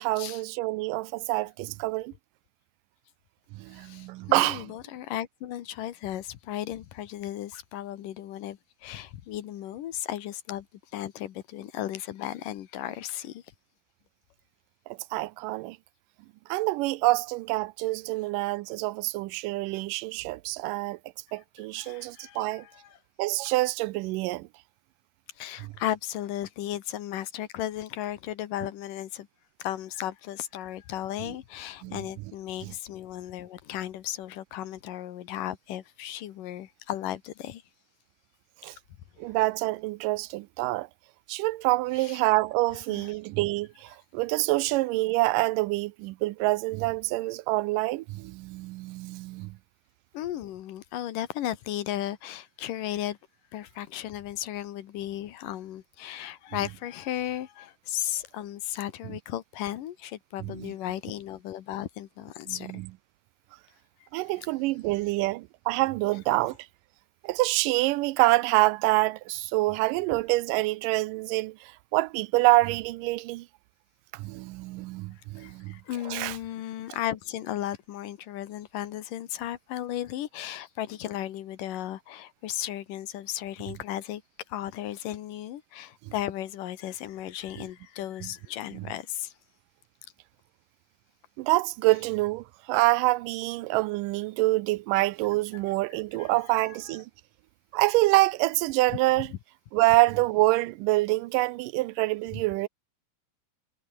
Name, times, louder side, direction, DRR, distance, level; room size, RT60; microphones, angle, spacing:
voice 1, 0.0-2.1 3.5-4.7 14.9-15.8 16.5-21.0 21.3-22.7 23.2-24.5 25.6-25.7 31.2-31.3 31.8-32.1 32.6-32.7 38.6-38.8 39.2-40.9 41.3-49.6 59.1-59.2 60.4-60.7 62.5-62.9 64.1-66.6 67.2-73.5 74.1-75.8 76.1-76.4 86.1-86.2 87.6-87.7 88.2-88.3 88.7-88.9 91.4-97.1 97.7-99.3 99.7-102.7, right 20 dB, 85° right, 2.2 m, -26 dB
voice 2, 3.7-10.7 10.9-13.4 21.8-23.0 25.4-29.3 29.6-37.6 42.0-42.2 42.9-43.1 50.1-53.2 53.5-62.8 75.4-84.2 84.5-89.3 96.2-96.7, left 12 dB, 80° left, 3.0 m, -35 dB
omnidirectional pair, 3.8 m